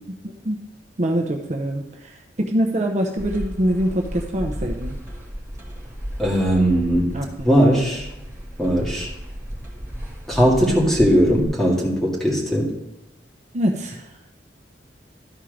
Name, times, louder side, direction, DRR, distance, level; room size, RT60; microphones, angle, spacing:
voice 1, 0.2-0.6 1.0-5.0 7.1-7.9 13.5-14.1, right 1 dB, 40° right, 1 dB, 0.7 m, -24 dB
sound 1, 3.2-11.4, equal, 15° right, 2.0 m, -34 dB
voice 2, 6.2-8.1 8.6-9.1 10.3-12.7, equal, 5° left, -4 dB, 2.1 m, -19 dB
12.5 x 4.5 x 5.0 m, 0.94 s
head